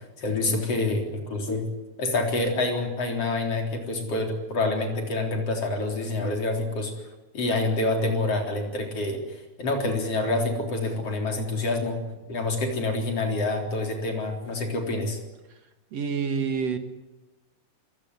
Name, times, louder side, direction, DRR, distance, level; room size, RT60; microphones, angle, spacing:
voice 1, 0.0-1.6 2.0-6.9 7.3-12.0 12.3-15.2, left 2 dB, 50° left, 3 dB, 4.8 m, -27 dB
voice 2, 15.9-16.8, right 6 dB, 60° right, 7 dB, 2.8 m, -28 dB
25.0 x 17.0 x 9.8 m, 1.1 s
omnidirectional pair, 3.4 m